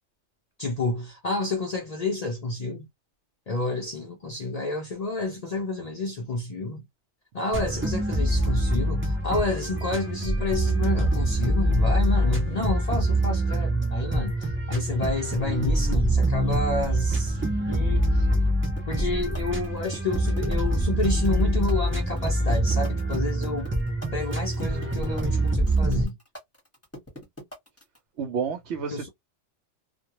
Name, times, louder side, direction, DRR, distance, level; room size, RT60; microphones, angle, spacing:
voice 1, 0.6-2.9 3.5-6.8 7.3-18.3 18.9-23.7 24.1-26.1 28.9-29.1, left 2 dB, 55° left, 0.4 m, -30 dB
sound 1, 7.5-26.0, right 1 dB, 20° right, 0.3 m, -25 dB
sound 2, 18.8-28.0, left 1 dB, 15° left, 0.9 m, -42 dB
voice 2, 28.2-29.1, right 6 dB, 70° right, 0.9 m, -30 dB
2.2 x 2.2 x 2.9 m
omnidirectional pair, 1.3 m